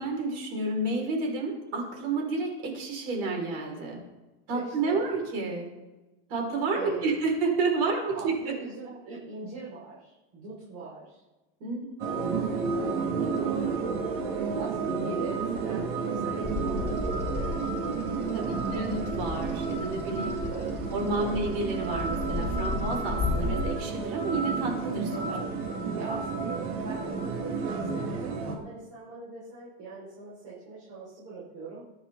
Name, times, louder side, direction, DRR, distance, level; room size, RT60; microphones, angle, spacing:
voice 1, 0.0-4.0 4.5-5.7 6.3-8.5 11.6-11.9 13.0-13.8 14.8-14.9 18.3-20.5 20.9-25.4, right 3 dB, 70° right, 0 dB, 6.2 m, -30 dB
voice 2, 4.5-5.1 6.7-7.1 8.1-11.2 12.5-13.3 14.5-17.7 18.3-18.9 20.5-20.8 21.1-21.4 25.3-31.8, right 4 dB, 50° right, -8 dB, 6.2 m, -42 dB
sound 1, 12.0-28.6, right 4 dB, 85° right, 2.8 m, -31 dB
Bird vocalization bird call bird song, 16.4-23.7, left 4 dB, 10° left, 3.2 m, -35 dB
23.5 x 10.0 x 4.2 m, 1.1 s
supercardioid pair, 170°, 30 cm